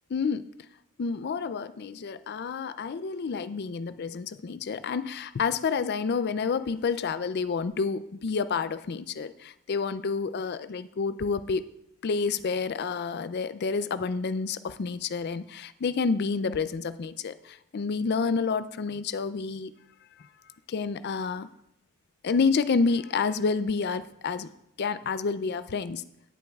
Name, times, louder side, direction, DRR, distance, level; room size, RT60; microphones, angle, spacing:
voice 1, 0.1-0.5 1.0-11.7 12.0-19.7 20.2-20.3 20.7-21.5 22.2-24.5 24.8-26.0, left 5 dB, 45° left, 14 dB, 0.4 m, -29 dB
17.0 x 8.3 x 2.4 m, 0.77 s
head